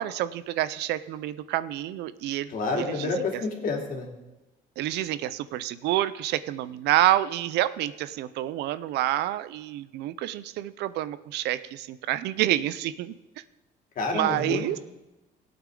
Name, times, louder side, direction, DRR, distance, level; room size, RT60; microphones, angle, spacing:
voice 1, 0.0-2.5 2.8-3.1 4.8-13.1 14.1-14.8, right 13 dB, 80° right, 15 dB, 0.6 m, -28 dB
voice 2, 2.5-4.1 14.0-14.8, left 3 dB, 55° left, 1 dB, 2.8 m, -29 dB
17.5 x 8.6 x 3.8 m, 0.99 s
cardioid pair, 110°, 17 cm